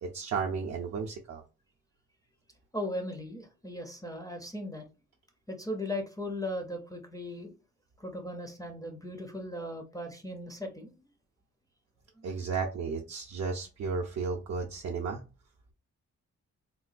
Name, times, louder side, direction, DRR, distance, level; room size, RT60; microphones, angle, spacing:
voice 1, 0.0-1.4 12.2-15.2, right 5 dB, 60° right, 1 dB, 0.5 m, -33 dB
voice 2, 2.7-4.9 5.5-7.5 8.0-10.9 12.2-12.3, left 1 dB, 10° left, 3 dB, 0.4 m, -37 dB
3.7 x 2.2 x 2.4 m, 0.31 s
wide cardioid pair, 165°, 30 cm